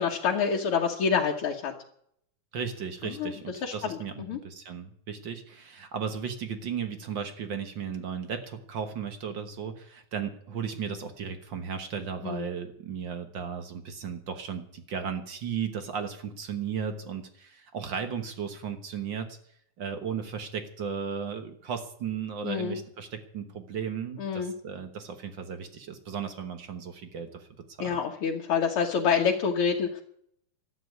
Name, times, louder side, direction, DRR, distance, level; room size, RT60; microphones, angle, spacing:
voice 1, 0.0-1.7 3.0-4.4 12.2-12.5 22.4-22.8 24.2-24.5 27.8-30.0, left 6 dB, 55° left, 0 dB, 1.7 m, -27 dB
voice 2, 2.5-19.4 19.8-27.5 27.8-28.0, right 7 dB, 55° right, 8 dB, 1.3 m, -35 dB
13.0 x 8.8 x 9.3 m, 0.68 s
omnidirectional pair, 3.7 m